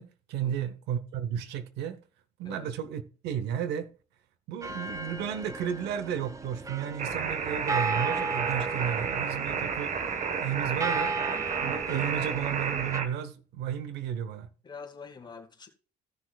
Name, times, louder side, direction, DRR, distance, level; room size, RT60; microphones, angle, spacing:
voice 1, 0.0-2.0 2.4-3.9 4.5-9.9 10.4-11.1 11.6-14.5, right 9 dB, 85° right, 0.9 m, -33 dB
sound 1, 4.6-13.0, right 3 dB, 20° right, 0.7 m, -36 dB
sound 2, 7.0-13.1, right 6 dB, 50° right, 1.3 m, -31 dB
voice 2, 14.6-15.7, left 5 dB, 25° left, 1.7 m, -45 dB
16.5 x 6.2 x 2.4 m
cardioid pair, 110°, 17 cm